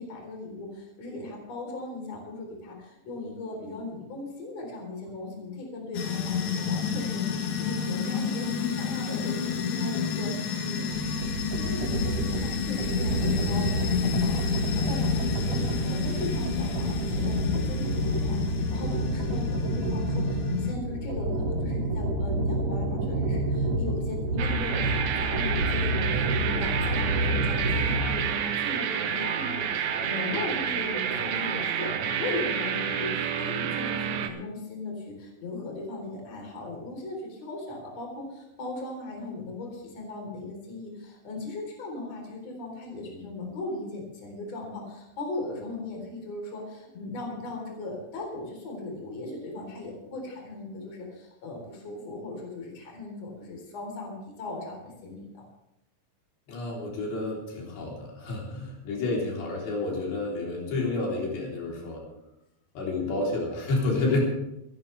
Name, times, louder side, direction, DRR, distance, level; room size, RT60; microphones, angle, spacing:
voice 1, 0.0-10.9 11.5-55.4, left 2 dB, 40° left, 0 dB, 4.7 m, -38 dB
sound 1, 5.9-20.8, left 6 dB, 65° left, 1.8 m, -30 dB
sound 2, 10.9-28.3, right 1 dB, 60° right, 1.6 m, -29 dB
sound 3, 24.4-34.3, right 8 dB, 75° right, 1.7 m, -29 dB
voice 2, 56.5-62.0 62.8-64.2, left 2 dB, 80° left, -3 dB, 5.8 m, -30 dB
26.5 x 11.5 x 3.4 m, 0.87 s
omnidirectional pair, 4.9 m